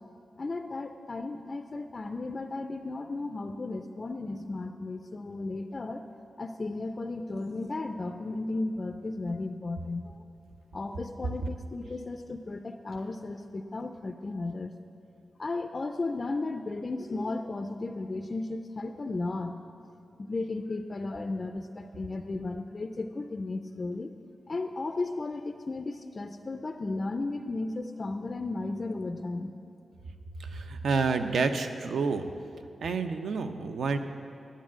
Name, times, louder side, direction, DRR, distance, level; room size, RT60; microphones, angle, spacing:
voice 1, 0.4-6.0 6.4-10.2 10.7-14.7 15.4-19.6 20.2-24.1 24.5-29.5, left 2 dB, 30° left, 6 dB, 0.3 m, -34 dB
voice 2, 30.4-32.3 32.8-34.0, right 4 dB, 80° right, 7 dB, 0.7 m, -29 dB
10.0 x 8.4 x 7.4 m, 2.5 s
wide cardioid pair, 160°, 0 cm